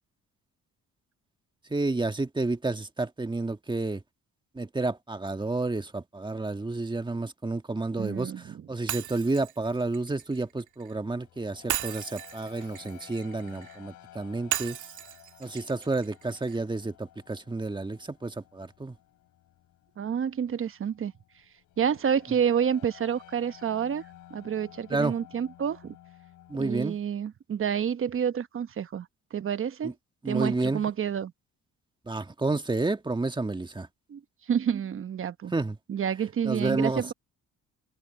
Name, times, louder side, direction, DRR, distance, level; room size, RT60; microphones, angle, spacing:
voice 1, 1.7-4.0 4.5-8.3 8.7-14.8 15.4-18.9 24.9-25.1 26.5-27.0 29.8-29.9 30.2-30.8 32.1-33.9 35.5-35.7 36.4-37.1, right 2 dB, 15° right, 1.7 m, -30 dB
voice 2, 8.0-8.7 20.0-21.1 21.8-24.0 24.3-26.0 26.6-29.9 30.2-31.3 34.1-35.5 35.9-37.1, right 8 dB, 45° right, 1.0 m, -29 dB
Shatter, 8.9-10.9 11.7-13.8 14.5-16.6, right 12 dB, 75° right, 1.9 m, -36 dB
sound 1, 10.4-26.8, left 13 dB, 80° left, 4.5 m, -53 dB
cardioid pair, 90°, 30 cm